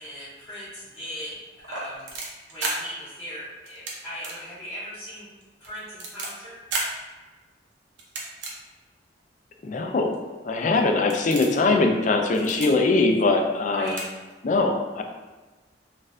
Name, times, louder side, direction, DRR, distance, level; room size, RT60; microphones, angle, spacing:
voice 1, 0.0-1.4 1.7-5.3 5.6-6.6 13.7-14.0, equal, 10° left, -13 dB, 0.8 m, -38 dB
sound 1, 1.6-2.7 3.6-3.9 4.2-4.4 4.7-4.8 5.4-6.3 6.7-6.9 8.0-8.5 9.2-9.3 10.1-10.2 10.7-10.8 11.1-11.6 12.3-12.7 13.6-13.7 13.9-14.0 14.3-14.4, right 3 dB, 75° right, 0.7 m, -32 dB
voice 2, 9.6-14.0 14.4-15.0, left 3 dB, 45° left, 4 dB, 0.3 m, -22 dB
4.0 x 2.5 x 2.5 m, 1.2 s
head